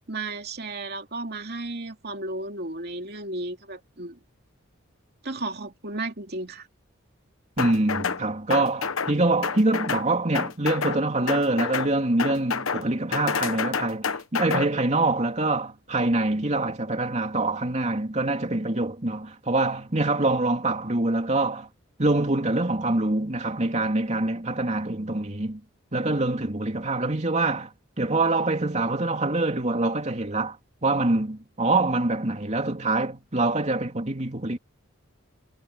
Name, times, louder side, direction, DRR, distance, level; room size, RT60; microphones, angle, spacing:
voice 1, 0.1-4.2 5.2-6.7, right 2 dB, 50° right, 2.8 m, -34 dB
sound 1, 7.6-8.2 8.5-9.1 9.4-10.1 10.3-11.0 11.3-11.9 12.2-12.8 13.1-14.7, left 5 dB, 85° left, 1.1 m, -28 dB
voice 2, 7.6-21.7 22.0-25.6 25.9-27.7 28.0-34.6, right 2 dB, 35° right, 2.8 m, -25 dB
head